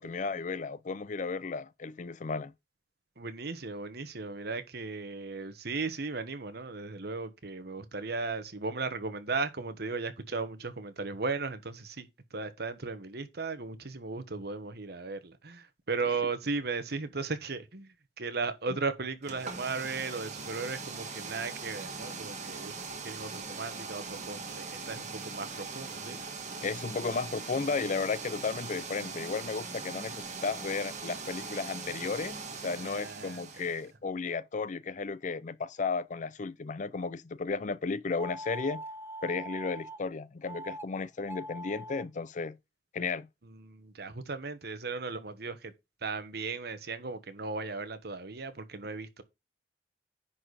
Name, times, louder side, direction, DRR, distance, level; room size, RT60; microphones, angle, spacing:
voice 1, 0.0-2.5 26.6-38.8 39.2-42.6 42.9-43.3, left 4 dB, 45° left, 0.5 m, -34 dB
voice 2, 3.2-22.7 23.0-26.2 32.8-33.7 43.4-45.7 46.0-49.2, right 4 dB, 65° right, 1.2 m, -36 dB
sound 1, 19.2-33.9, right 4 dB, 40° right, 1.8 m, -41 dB
sound 2, 38.2-40.0 40.5-40.9 41.2-42.0, right 1 dB, 15° right, 0.5 m, -42 dB
10.0 x 4.2 x 4.8 m
head